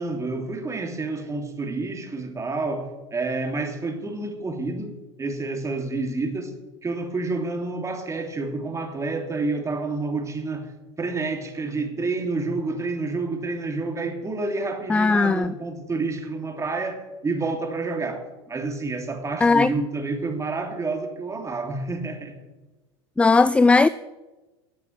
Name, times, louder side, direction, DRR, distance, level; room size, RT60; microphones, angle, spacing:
voice 1, 0.0-4.9 5.2-6.5 6.8-10.7 11.0-22.3, right 3 dB, 20° right, 3.0 m, -29 dB
voice 2, 14.9-15.5 19.4-19.7 23.2-23.9, left 3 dB, 10° left, 0.4 m, -17 dB
13.0 x 8.2 x 9.0 m
hypercardioid pair, 90°, 14 cm